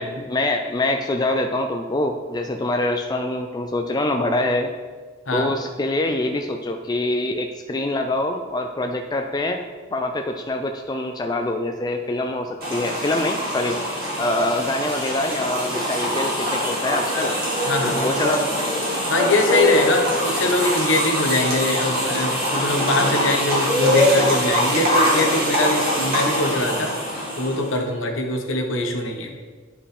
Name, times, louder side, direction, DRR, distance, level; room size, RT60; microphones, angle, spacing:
voice 1, 0.0-4.7 5.3-9.6 9.9-13.8 14.2-17.3 17.8-18.5, left 1 dB, 20° left, 4 dB, 0.4 m, -25 dB
sound 1, 12.6-27.8, equal, 50° right, 2.0 m, -23 dB
voice 2, 17.7-18.0 19.1-26.9 27.4-29.3, left 2 dB, 70° left, 2 dB, 1.1 m, -22 dB
11.0 x 5.0 x 3.3 m, 1.5 s
head